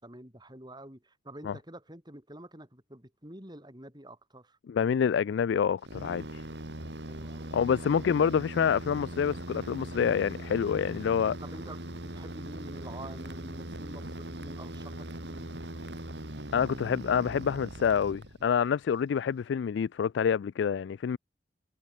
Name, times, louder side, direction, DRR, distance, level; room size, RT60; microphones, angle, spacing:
voice 1, 0.0-4.6 7.1-8.1 11.4-15.6, right 1 dB, 25° right, 5.7 m, -48 dB
voice 2, 4.7-6.4 7.5-11.4 16.5-21.2, left 7 dB, 85° left, 0.3 m, -27 dB
sound 1, 5.8-18.7, right 1 dB, 70° right, 4.7 m, -40 dB
head